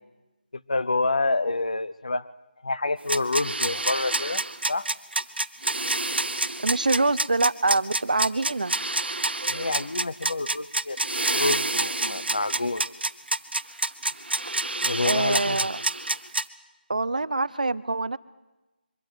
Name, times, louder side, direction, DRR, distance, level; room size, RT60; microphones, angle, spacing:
voice 1, 0.7-2.3 2.6-4.4 4.7-4.9 9.5-11.0 11.3-12.8 14.8-15.6, left 3 dB, 40° left, 14 dB, 0.7 m, -27 dB
sound 1, 3.1-16.4, right 2 dB, 80° right, 1.0 m, -27 dB
voice 2, 6.6-8.7 15.0-15.8 16.9-18.2, right 3 dB, 50° right, 16 dB, 0.6 m, -25 dB
23.0 x 14.0 x 9.3 m, 1.1 s
figure-of-eight pair, 175°, 6 cm